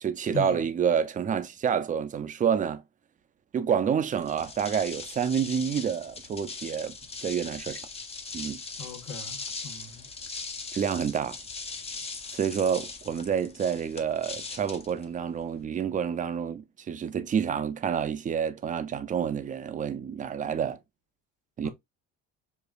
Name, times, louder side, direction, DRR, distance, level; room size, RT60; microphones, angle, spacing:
voice 1, 0.0-2.8 3.5-7.8 8.3-8.6 10.7-11.4 12.3-20.8 21.6-21.7, right 7 dB, 25° right, 0.4 m, -28 dB
sound 1, 4.2-15.6, left 4 dB, 20° left, 0.6 m, -40 dB
voice 2, 8.8-10.0 21.6-21.7, left 4 dB, 60° left, 1.3 m, -38 dB
4.9 x 2.4 x 2.3 m
cardioid pair, 120°, 31 cm